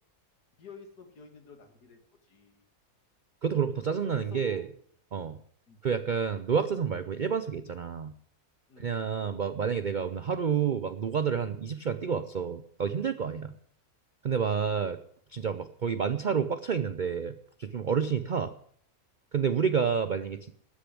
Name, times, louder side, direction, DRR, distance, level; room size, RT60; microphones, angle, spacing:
voice 1, 0.6-2.7 4.1-4.6 5.7-5.8 8.7-9.1 13.3-13.5, left 4 dB, 85° left, 6 dB, 2.6 m, -50 dB
voice 2, 3.4-4.7 5.1-5.4 5.8-8.1 8.8-13.5 14.2-15.0 15.3-18.5 19.3-20.5, right 7 dB, 75° right, 12 dB, 0.4 m, -29 dB
13.0 x 6.8 x 9.7 m, 0.62 s
omnidirectional pair, 1.7 m